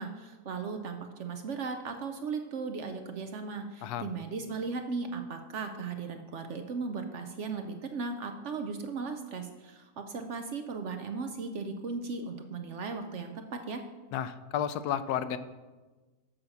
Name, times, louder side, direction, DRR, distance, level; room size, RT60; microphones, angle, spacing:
voice 1, 0.0-13.8, right 4 dB, 65° right, 6 dB, 0.8 m, -37 dB
voice 2, 14.1-15.4, left 9 dB, 80° left, 13 dB, 1.1 m, -32 dB
7.1 x 5.3 x 6.9 m, 1.3 s
omnidirectional pair, 1.7 m